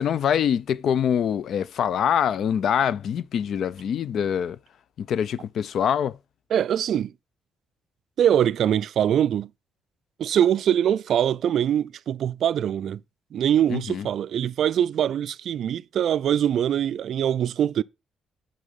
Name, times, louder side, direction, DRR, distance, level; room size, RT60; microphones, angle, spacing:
voice 1, 0.0-4.6 5.0-6.2 13.7-14.1, left 8 dB, 65° left, 0.3 m, -24 dB
voice 2, 6.5-7.1 8.2-9.5 10.2-13.0 13.3-17.8, right 9 dB, 65° right, 0.3 m, -23 dB
8.4 x 3.8 x 5.1 m
cardioid pair, 90°, 0 cm